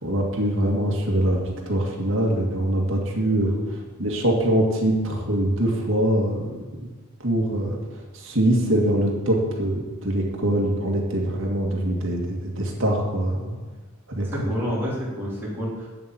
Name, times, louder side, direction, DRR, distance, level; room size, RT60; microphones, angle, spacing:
voice 1, 0.0-3.5 4.0-6.6 7.2-7.8 8.1-13.5 14.1-14.5, right 1 dB, 60° right, 0 dB, 2.1 m, -23 dB
voice 2, 14.2-15.9, equal, 10° right, -7 dB, 3.6 m, -29 dB
8.6 x 7.4 x 7.7 m, 1.3 s
head